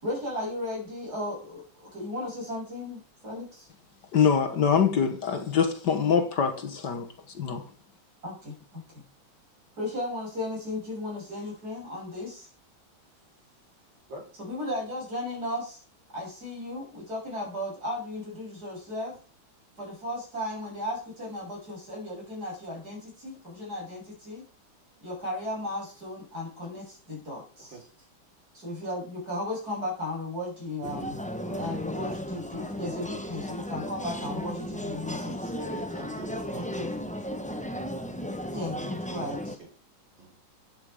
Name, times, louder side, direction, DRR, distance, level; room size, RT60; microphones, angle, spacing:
voice 1, 0.0-3.7 8.2-8.8 9.8-12.5 14.4-15.8 16.1-19.2 19.8-24.5 25.0-27.8 28.5-31.2 31.4-35.5 36.5-36.9 38.5-39.6, left 1 dB, 50° right, 7.3 m, -35 dB
voice 2, 4.1-7.7, left 7 dB, 60° left, 1.8 m, -24 dB
sound 1, 30.8-39.6, equal, 5° left, 0.7 m, -35 dB
voice 3, 35.2-36.8 39.6-39.7 40.2-40.4, right 2 dB, 65° right, 4.2 m, -45 dB
13.0 x 9.4 x 5.0 m
omnidirectional pair, 2.2 m